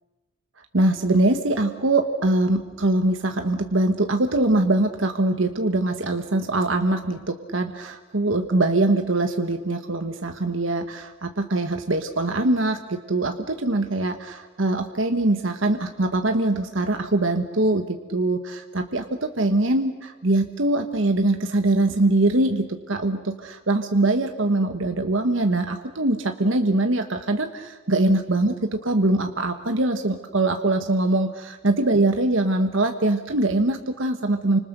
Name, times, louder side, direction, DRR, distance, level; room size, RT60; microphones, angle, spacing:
voice 1, 0.7-34.6, right 2 dB, 65° right, 6 dB, 1.3 m, -23 dB
29.5 x 26.0 x 6.7 m, 1.2 s
head